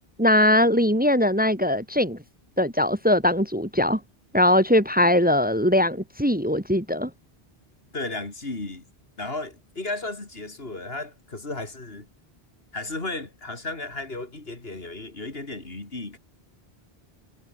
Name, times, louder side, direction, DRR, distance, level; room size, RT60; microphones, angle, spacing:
voice 1, 0.2-2.2 2.6-4.0 4.3-7.1, left 1 dB, 10° right, 1.9 m, -21 dB
voice 2, 7.9-8.9 9.2-12.1 12.7-16.2, left 2 dB, 65° left, 3.6 m, -34 dB
omnidirectional pair, 1.1 m